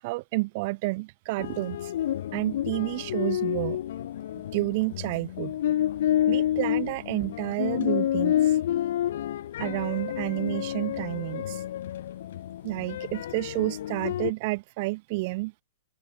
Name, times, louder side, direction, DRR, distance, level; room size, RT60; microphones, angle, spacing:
voice 1, 0.0-1.9 2.3-3.8 4.4-5.5 6.3-8.3 9.6-11.6 12.6-15.5, right 23 dB, 45° right, 1.9 m, -30 dB
sound 1, 1.4-14.3, left 11 dB, 70° left, 4.1 m, -29 dB
open air
hypercardioid pair, 140°, 0 cm